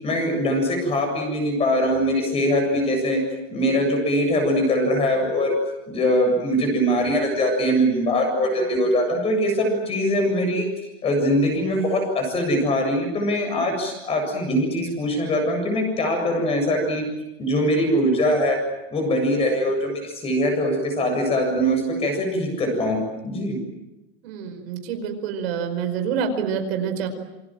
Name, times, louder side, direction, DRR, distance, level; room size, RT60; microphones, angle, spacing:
voice 1, 0.0-3.2 3.5-5.6 5.9-10.7 11.0-17.1 17.4-18.6 18.9-23.6, equal, 20° left, 4 dB, 7.4 m, -22 dB
voice 2, 24.2-27.1, right 7 dB, 75° right, 6 dB, 5.1 m, -27 dB
28.5 x 24.5 x 7.7 m, 0.99 s
supercardioid pair, 170°, 31 cm